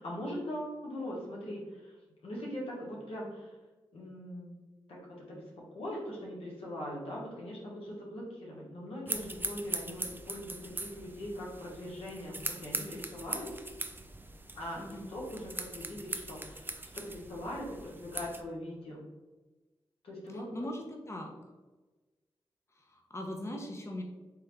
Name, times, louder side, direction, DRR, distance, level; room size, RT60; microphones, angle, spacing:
voice 1, 0.0-1.9 2.2-3.5 3.9-4.6 4.9-13.5 14.5-14.8 15.1-16.7 16.9-19.1 20.0-20.7, left 1 dB, 85° left, -3 dB, 1.1 m, -41 dB
sound 1, 9.1-18.4, right 2 dB, 20° right, 0.4 m, -41 dB
voice 2, 14.8-15.1 20.3-21.4 22.7-24.0, left 1 dB, 30° left, 1 dB, 0.7 m, -40 dB
3.6 x 3.2 x 3.2 m, 1.2 s
cardioid pair, 45°, 10 cm